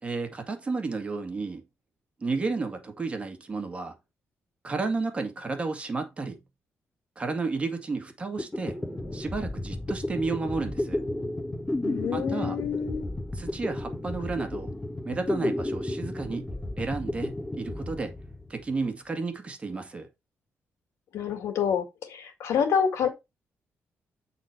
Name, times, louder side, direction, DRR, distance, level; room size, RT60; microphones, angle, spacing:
voice 1, 0.0-1.6 2.2-3.9 4.6-6.4 7.2-8.8 9.1-11.0 12.1-12.6 13.4-14.7 15.1-16.5 16.8-18.2 18.5-20.1, right 3 dB, 25° right, 2.0 m, -32 dB
sound 1, 8.1-8.2 8.4-18.8, left 1 dB, 15° left, 2.2 m, -33 dB
voice 2, 11.8-13.0 21.1-23.1, left 7 dB, 80° left, 2.0 m, -27 dB
8.9 x 4.2 x 4.6 m
cardioid pair, 125°, 5 cm